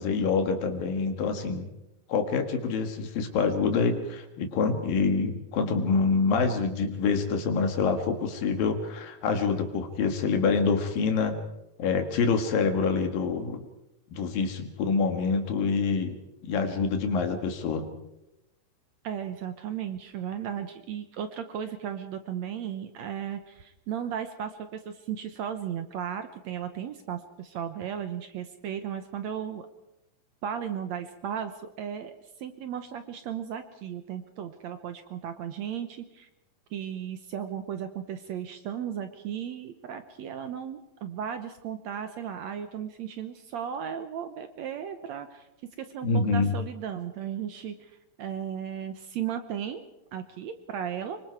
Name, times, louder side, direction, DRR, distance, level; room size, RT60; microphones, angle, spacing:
voice 1, 0.0-1.7 2.1-11.4 11.8-13.6 14.1-16.2 16.5-17.9 46.0-46.5, left 5 dB, 80° left, 6 dB, 3.7 m, -26 dB
voice 2, 19.0-29.7 30.4-32.1 32.4-36.3 36.7-45.5 45.8-47.9 48.2-49.8 50.1-51.2, right 9 dB, 70° right, 9 dB, 1.8 m, -35 dB
25.0 x 24.0 x 4.7 m, 0.91 s
omnidirectional pair, 4.0 m